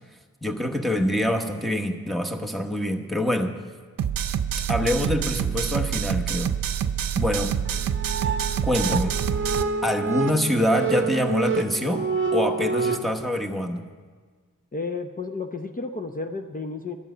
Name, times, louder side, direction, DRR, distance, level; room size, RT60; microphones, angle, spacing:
voice 1, 0.4-3.6 4.7-6.6 7.1-7.6 8.6-9.2 9.8-13.9, left 1 dB, ahead, 2 dB, 1.0 m, -25 dB
sound 1, 4.0-9.6, right 8 dB, 80° right, 0.6 m, -26 dB
sound 2, 7.7-13.0, right 4 dB, 35° right, 0.8 m, -27 dB
voice 2, 14.7-17.0, left 3 dB, 25° left, 5 dB, 0.6 m, -32 dB
11.0 x 7.5 x 9.1 m, 1.5 s
wide cardioid pair, 120°, 33 cm